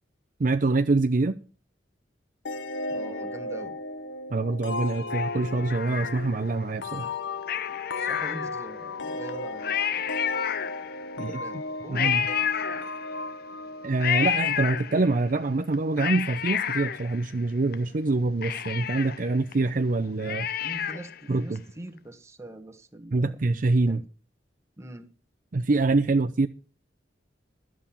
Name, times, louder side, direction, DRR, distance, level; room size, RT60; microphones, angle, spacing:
voice 1, 0.4-1.4 4.3-7.1 11.2-11.4 11.9-12.2 13.8-20.5 21.3-21.6 23.1-24.0 25.5-26.5, right 3 dB, 50° right, 0.6 m, -25 dB
sound 1, 2.5-14.9, left 3 dB, 85° left, 0.8 m, -35 dB
voice 2, 2.9-3.8 7.9-10.2 11.3-12.9 20.6-23.4 23.9-24.0 24.8-25.1, right 1 dB, 15° right, 1.3 m, -43 dB
Cat, 5.1-6.6 7.4-8.8 9.3-9.4 9.6-11.1 11.9-13.3 14.0-15.3 15.7-17.7 18.1-18.2 18.4-21.2 21.6-21.7, left 9 dB, 55° left, 0.6 m, -30 dB
12.0 x 7.5 x 7.0 m
head